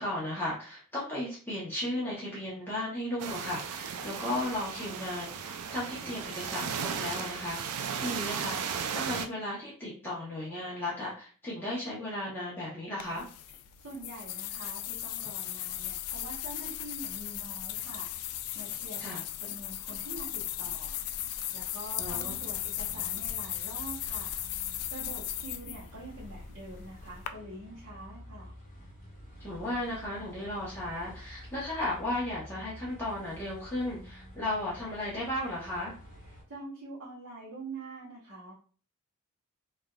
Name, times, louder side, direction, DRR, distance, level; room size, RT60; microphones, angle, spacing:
voice 1, 0.0-13.2 19.0-19.2 22.0-22.4 29.4-35.9, left 1 dB, 10° left, -8 dB, 0.8 m, -35 dB
sound 1, 3.2-9.3, right 7 dB, 90° right, 0.4 m, -36 dB
sound 2, 13.0-27.3, left 12 dB, 80° left, 0.3 m, -37 dB
voice 2, 13.5-18.1 18.5-21.0 21.5-24.4 24.9-28.5 36.1-38.5, right 2 dB, 65° right, -8 dB, 1.0 m, -45 dB
sound 3, 22.0-36.4, equal, 35° left, 1.0 m, -50 dB
3.2 x 2.5 x 2.3 m, 0.40 s
head